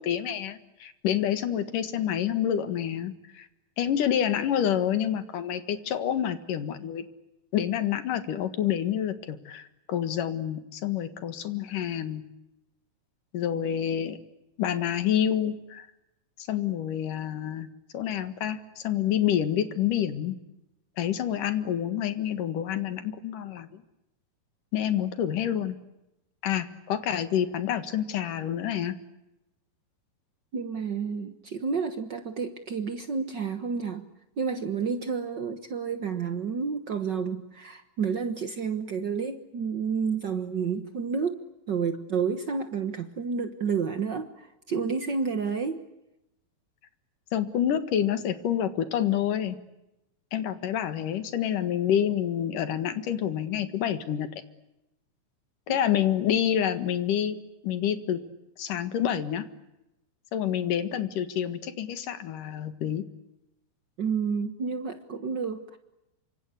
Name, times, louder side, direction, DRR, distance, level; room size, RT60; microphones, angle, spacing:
voice 1, 0.0-3.5 3.8-7.0 7.5-12.2 13.3-14.2 14.6-15.9 16.5-17.7 17.9-20.3 21.0-23.8 24.7-25.8 26.4-28.9 47.3-49.6 50.3-54.3 55.7-57.4 57.6-58.2 58.6-59.5 60.3-63.0, left 10 dB, 70° left, 11 dB, 3.2 m, -28 dB
voice 2, 30.5-34.0 34.4-41.4 41.7-45.8 55.7-55.8 64.0-65.8, right 5 dB, 70° right, 9 dB, 1.0 m, -30 dB
27.0 x 25.0 x 8.4 m, 0.90 s
omnidirectional pair, 4.1 m